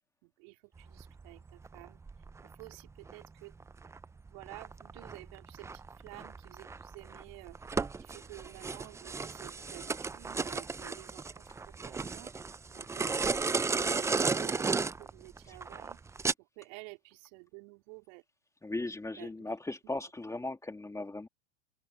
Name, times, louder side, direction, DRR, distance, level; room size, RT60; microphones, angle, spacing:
voice 1, 0.2-3.6 4.3-12.3 12.7-16.0 16.4-18.2 19.2-19.3 19.8-19.9, right 32 dB, 60° right, 4.1 m, -52 dB
sound 1, 0.8-16.3, right 4 dB, 10° right, 0.5 m, -35 dB
voice 2, 18.6-21.3, left 2 dB, 10° left, 2.1 m, -38 dB
open air
hypercardioid pair, 110°, 37 cm